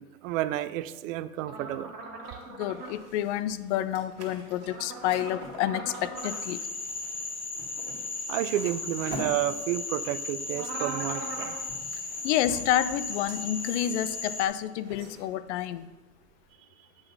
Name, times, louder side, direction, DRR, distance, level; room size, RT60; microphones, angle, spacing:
voice 1, 0.0-1.9 8.3-11.5, right 13 dB, 60° right, 15 dB, 0.5 m, -31 dB
sound 1, 1.4-2.9 4.6-6.4 10.5-11.6, right 3 dB, 90° right, 1.6 m, -39 dB
sound 2, 2.2-16.5, right 2 dB, 35° right, 1.8 m, -48 dB
voice 2, 2.6-5.9 6.2-6.6 12.2-15.9, left 12 dB, 50° left, 14 dB, 0.4 m, -29 dB
Frog, 6.2-14.5, left 3 dB, 20° left, 1.1 m, -36 dB
8.0 x 3.8 x 5.3 m, 1.2 s
hypercardioid pair, 100°, 47 cm